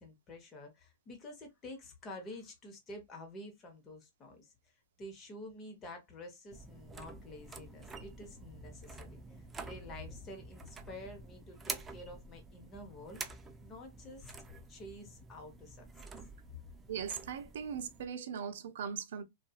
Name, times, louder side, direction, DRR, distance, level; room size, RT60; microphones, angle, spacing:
voice 1, 0.0-4.7 5.0-13.2 13.6-14.3 14.7-16.1, left 1 dB, 20° left, 0.9 m, -49 dB
sound 1, 6.5-18.1, right 3 dB, 10° right, 0.3 m, -48 dB
voice 2, 16.9-19.2, right 7 dB, 65° right, 0.6 m, -39 dB
2.6 x 2.4 x 2.3 m
hypercardioid pair, 150°, 0 cm